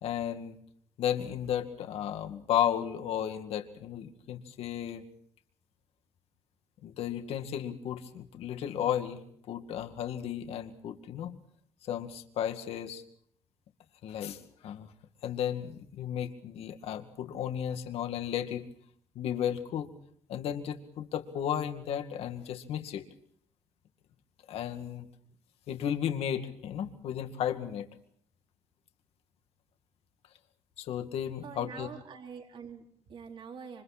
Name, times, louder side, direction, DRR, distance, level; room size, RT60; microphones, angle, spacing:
voice 1, 0.0-0.6 1.0-5.0 6.8-11.4 11.8-13.0 14.0-14.9 15.2-18.7 19.2-19.9 20.3-23.1 24.5-25.1 25.7-27.9 30.8-31.9, left 9 dB, 80° left, 7 dB, 2.2 m, -34 dB
voice 2, 31.4-33.8, right 6 dB, 55° right, 3 dB, 4.0 m, -45 dB
27.5 x 25.5 x 4.3 m, 0.63 s
cardioid pair, 125°, 10 cm